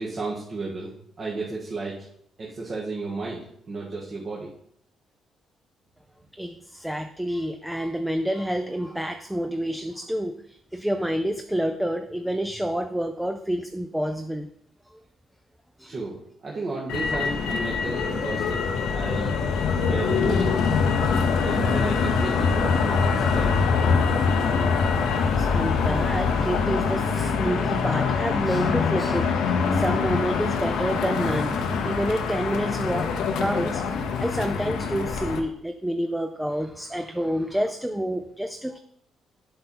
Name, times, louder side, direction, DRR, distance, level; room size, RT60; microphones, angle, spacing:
voice 1, 0.0-2.1 2.4-4.5 15.9-18.6 18.9-19.4 19.7-20.7 21.4-23.7, right 3 dB, 45° right, -4 dB, 1.6 m, -33 dB
voice 2, 6.4-14.5 15.8-16.0 25.1-38.8, equal, 5° right, 7 dB, 0.5 m, -28 dB
Motor vehicle (road), 16.9-35.4, left 5 dB, 85° left, 0.8 m, -24 dB
7.9 x 5.5 x 4.2 m, 0.69 s
cardioid pair, 90°, 0 cm